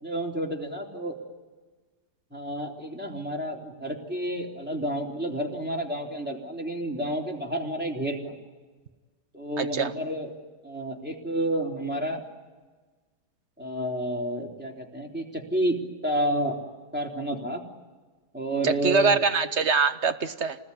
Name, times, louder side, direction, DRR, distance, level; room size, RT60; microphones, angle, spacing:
voice 1, 0.0-1.2 2.3-8.3 9.3-10.3 10.6-12.2 13.6-15.8 16.0-16.6 16.9-17.6 18.3-19.2, right 1 dB, 5° right, -1 dB, 3.5 m, -30 dB
voice 2, 9.6-9.9 18.6-20.6, right 4 dB, 50° right, 11 dB, 1.1 m, -23 dB
29.0 x 20.0 x 9.9 m, 1.3 s
omnidirectional pair, 1.8 m